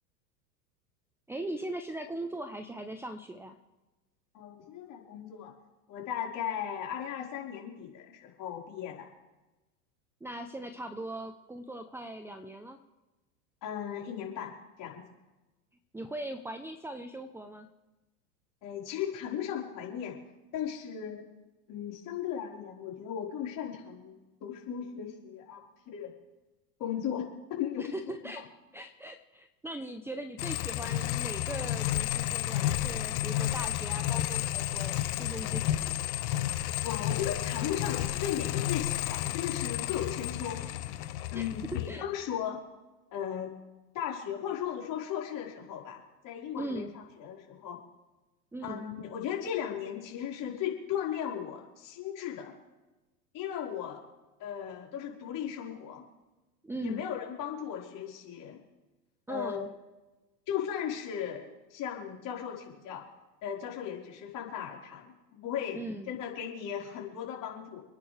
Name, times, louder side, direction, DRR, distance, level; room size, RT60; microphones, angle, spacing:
voice 1, 1.3-3.6 10.2-12.8 15.9-17.7 27.8-35.9 41.3-42.0 46.5-47.0 48.5-48.8 56.6-57.1 59.3-59.7 65.7-66.1, right 1 dB, 5° right, 7 dB, 0.9 m, -40 dB
voice 2, 4.3-5.5 5.9-9.0 13.6-14.5 14.8-15.0 18.6-20.2 20.5-21.2 21.7-24.1 24.4-25.6 25.9-26.1 26.8-28.0 36.8-40.6 41.3-42.6 43.1-43.5 43.9-47.8 48.6-52.5 53.3-54.0 54.4-56.0 56.8-58.6 59.3-59.7 60.5-63.1 63.4-65.8 66.1-67.8, left 9 dB, 40° left, -2 dB, 5.0 m, -36 dB
sound 1, 30.4-41.9, left 13 dB, 60° left, 1.3 m, -32 dB
29.5 x 10.0 x 3.5 m, 1.1 s
hypercardioid pair, 100°, 47 cm